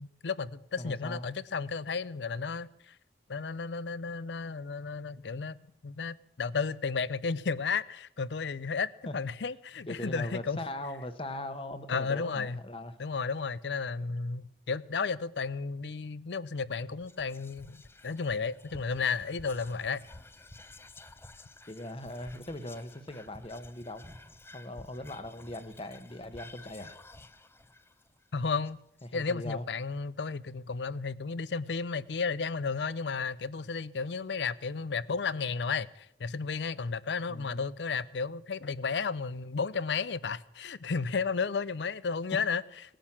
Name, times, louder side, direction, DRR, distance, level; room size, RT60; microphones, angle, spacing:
voice 1, 0.0-2.9 3.3-5.6 5.8-10.6 11.9-12.6 13.0-20.0 28.3-28.8 29.1-42.6, left 5 dB, 80° left, 0.6 m, -33 dB
voice 2, 0.8-1.3 9.1-9.2 9.9-13.0 21.7-24.0 24.5-27.0 29.0-29.6 37.3-37.6, left 1 dB, 30° left, 1.1 m, -40 dB
Whispering, 17.0-29.5, left 2 dB, 15° left, 0.6 m, -52 dB
18.5 x 10.0 x 7.4 m
head